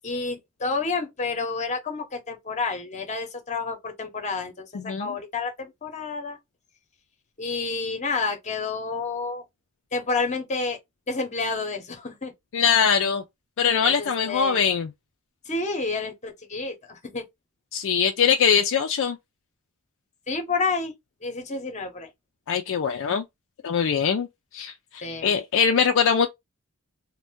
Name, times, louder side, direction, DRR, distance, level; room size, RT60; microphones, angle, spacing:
voice 1, 0.0-6.4 7.4-9.4 9.9-10.8 11.1-12.3 13.8-14.6 15.5-17.2 20.3-20.9 21.2-22.1 25.0-25.3, left 4 dB, 30° left, 0.8 m, -29 dB
voice 2, 4.7-5.1 12.5-13.2 13.6-14.9 17.7-19.2 22.5-23.2 23.6-24.3 24.5-26.3, left 7 dB, 60° left, 0.4 m, -22 dB
2.6 x 2.1 x 3.4 m
head